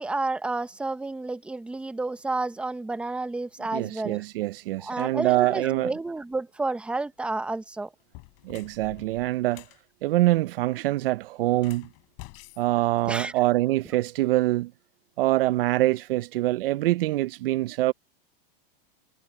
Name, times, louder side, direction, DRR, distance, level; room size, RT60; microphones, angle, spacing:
voice 1, 0.0-4.2 4.8-7.9 13.1-13.3, right 2 dB, 5° right, 0.7 m, -30 dB
voice 2, 3.7-5.9 8.4-9.6 10.0-11.9 12.6-14.7 15.2-17.9, right 17 dB, 70° right, 0.7 m, -24 dB
sound 1, 7.2-7.5 8.0-9.8 11.5-13.6, left 38 dB, 45° left, 3.8 m, -48 dB
supercardioid pair, 145°, 29 cm